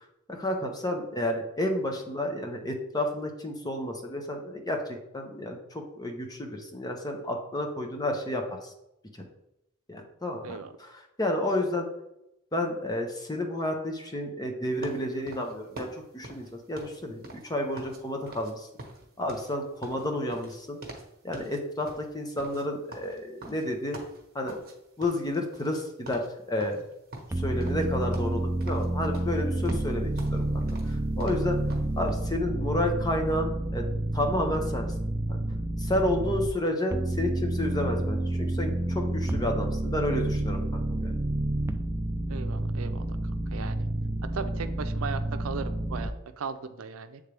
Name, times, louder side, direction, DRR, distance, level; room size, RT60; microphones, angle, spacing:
voice 1, 0.3-8.7 9.9-11.9 12.5-15.9 16.1-18.7 19.2-20.8 21.2-24.0 24.3-24.6 25.0-26.8 27.4-31.6 32.0-33.8 34.1-34.9 35.3-35.4 35.8-41.1, left 1 dB, 20° left, 3 dB, 0.8 m, -31 dB
sound 1, 14.8-18.0 18.3-18.5 18.8-21.1 21.3-21.6 21.9-24.7 25.0-25.8 26.1-26.3 26.6-27.9 28.1-28.9 29.1-31.9, right 2 dB, 50° right, 1.2 m, -45 dB
sound 2, 27.3-36.5 36.9-46.1, right 1 dB, 15° right, 0.3 m, -29 dB
voice 2, 42.3-43.1 43.5-43.9 44.3-47.2, right 5 dB, 85° right, 8 dB, 0.5 m, -37 dB
8.1 x 3.6 x 3.4 m, 0.85 s
head